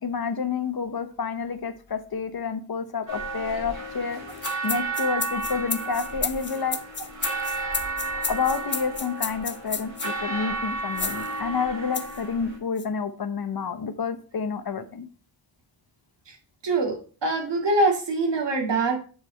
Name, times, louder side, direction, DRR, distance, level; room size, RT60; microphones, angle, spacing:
voice 1, 0.0-4.2 4.6-6.8 8.3-15.1, left 5 dB, 55° left, 9 dB, 0.9 m, -29 dB
sound 1, 3.1-12.6, right 3 dB, 45° right, 4.7 m, -33 dB
sound 2, 4.3-10.1 11.0-11.3 11.9-12.2 12.8-12.9, left 5 dB, 25° left, 0.5 m, -31 dB
voice 2, 16.6-19.0, right 2 dB, 65° right, 3 dB, 2.1 m, -24 dB
8.4 x 4.8 x 4.4 m, 0.38 s
wide cardioid pair, 155°, 45 cm